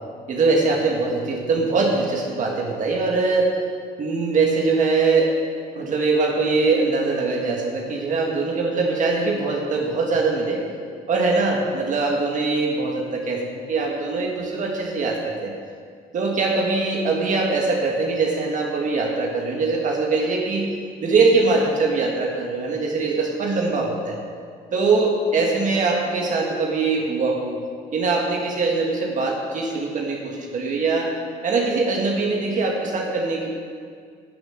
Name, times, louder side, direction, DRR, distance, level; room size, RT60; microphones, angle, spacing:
voice 1, 0.3-3.6 4.0-5.4 5.7-10.6 11.1-15.5 16.1-20.7 21.0-24.2 24.7-27.5 27.9-31.1 31.4-33.5, right 3 dB, 50° right, 0 dB, 1.6 m, -22 dB
11.5 x 6.9 x 7.7 m, 2.1 s
cardioid pair, 110°, 17 cm